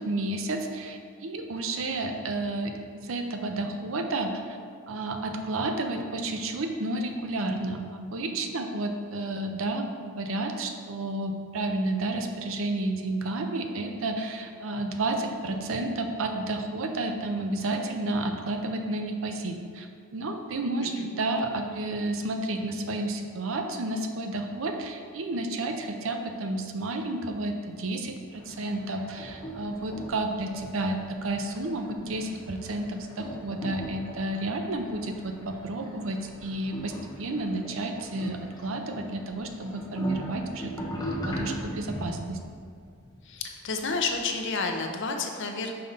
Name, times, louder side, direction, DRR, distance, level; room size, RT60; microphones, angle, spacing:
voice 1, 0.0-4.6 4.9-42.4, right 2 dB, 70° right, 5 dB, 0.6 m, -31 dB
sound 1, 28.3-44.4, equal, 20° left, 1.0 m, -40 dB
voice 2, 43.2-45.7, left 4 dB, 60° left, 4 dB, 0.6 m, -30 dB
5.6 x 5.1 x 4.0 m, 2.2 s
head